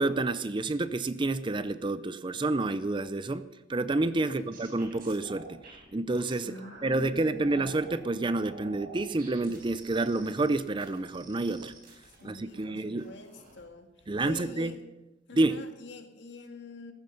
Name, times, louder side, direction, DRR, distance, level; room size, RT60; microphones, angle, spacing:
voice 1, 0.0-5.6 5.9-6.5 6.8-11.7 12.2-13.1 14.1-14.7 15.3-15.6, right 2 dB, 25° right, 14 dB, 0.5 m, -29 dB
sound 1, 4.1-6.9 7.3-8.0 8.4-12.6 13.0-13.6 14.0-14.4, right 3 dB, 50° right, 4.3 m, -50 dB
voice 2, 6.4-8.2 12.1-14.8 15.3-16.9, left 2 dB, 65° left, 5 dB, 1.9 m, -46 dB
15.0 x 14.5 x 5.3 m, 1.0 s
head